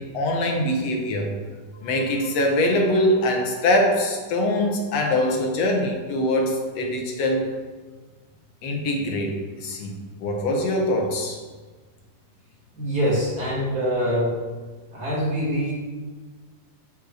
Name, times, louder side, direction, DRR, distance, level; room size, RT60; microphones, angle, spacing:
voice 1, 0.0-1.4 1.8-7.4 8.6-9.9 10.2-11.4, left 1 dB, 60° left, 2 dB, 2.0 m, -23 dB
voice 2, 12.7-14.3 14.9-15.7, equal, 30° right, -6 dB, 2.6 m, -24 dB
13.0 x 5.6 x 4.9 m, 1.4 s
omnidirectional pair, 4.0 m